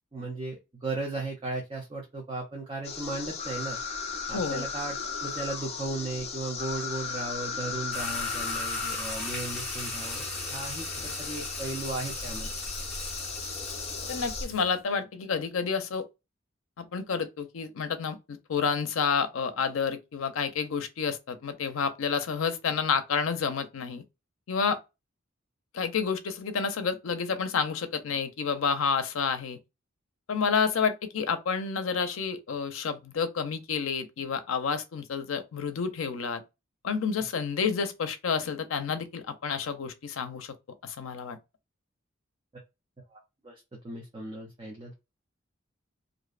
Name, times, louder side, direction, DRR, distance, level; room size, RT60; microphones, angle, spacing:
voice 1, 0.1-3.8 4.3-10.2 10.5-12.5 43.1-44.9, right 2 dB, 25° right, 0.5 m, -36 dB
sound 1, 2.8-14.5, left 5 dB, 30° left, 0.4 m, -36 dB
voice 2, 4.3-4.6 14.1-16.1 16.8-24.0 24.5-24.8 25.7-29.6 30.3-36.4 36.8-40.5 40.8-41.4, left 6 dB, 90° left, 0.5 m, -29 dB
sound 2, 7.9-14.7, left 1 dB, 5° left, 0.9 m, -38 dB
2.6 x 2.1 x 2.3 m
head